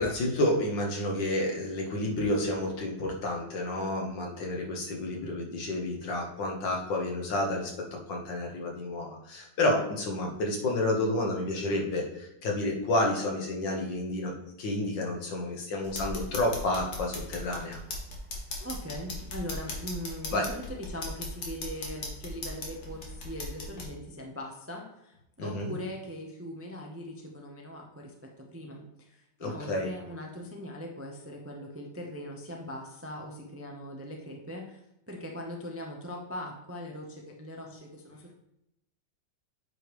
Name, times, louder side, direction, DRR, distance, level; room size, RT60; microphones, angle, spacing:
voice 1, 0.0-7.7 8.1-14.3 14.6-17.8 20.3-20.4 25.4-25.7 29.4-29.9, left 1 dB, 90° left, 0 dB, 2.0 m, -30 dB
sound 1, 15.8-23.9, left 2 dB, 60° left, 1.9 m, -38 dB
voice 2, 18.6-38.3, equal, 20° right, 1 dB, 0.4 m, -41 dB
8.8 x 5.0 x 3.1 m, 0.84 s
omnidirectional pair, 1.9 m